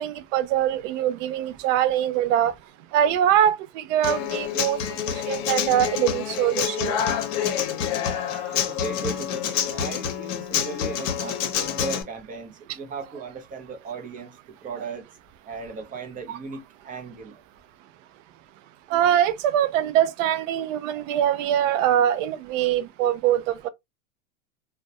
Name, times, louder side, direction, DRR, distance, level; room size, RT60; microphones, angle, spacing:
voice 1, 0.0-2.5 2.9-4.8 5.3-7.0 18.9-23.7, right 11 dB, 65° right, 0.5 m, -23 dB
Human voice / Acoustic guitar, 4.0-12.0, left 9 dB, 65° left, 0.7 m, -27 dB
voice 2, 8.5-15.1 15.4-17.4, right 4 dB, 20° right, 0.5 m, -37 dB
2.2 x 2.2 x 2.7 m
supercardioid pair, 125°, 41 cm